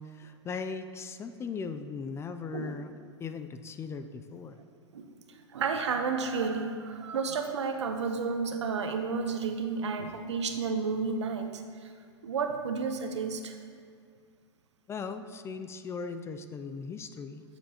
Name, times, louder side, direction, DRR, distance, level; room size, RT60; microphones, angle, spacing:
voice 1, 0.0-2.9 3.2-4.6 14.9-17.4, left 5 dB, 20° left, 9 dB, 0.4 m, -38 dB
voice 2, 5.5-11.9 12.2-13.6, right 5 dB, 85° right, 6 dB, 0.9 m, -31 dB
13.5 x 6.9 x 3.0 m, 2.2 s
hypercardioid pair, 115°, 15 cm